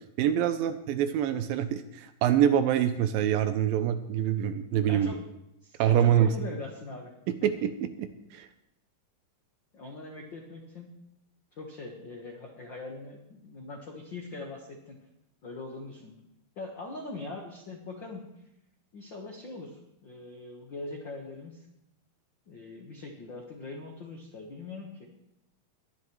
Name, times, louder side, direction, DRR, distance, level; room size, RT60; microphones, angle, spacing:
voice 1, 0.2-5.1 5.8-6.3 7.4-7.7 8.0-8.5, right 10 dB, 80° right, 10 dB, 2.3 m, -25 dB
voice 2, 4.9-5.2 5.6-7.1 9.7-10.9 11.5-15.0 15.4-16.2 16.5-18.2 18.9-21.7 22.5-25.1, left 3 dB, 70° left, 0 dB, 1.1 m, -41 dB
20.5 x 11.0 x 3.1 m, 0.84 s
omnidirectional pair, 4.3 m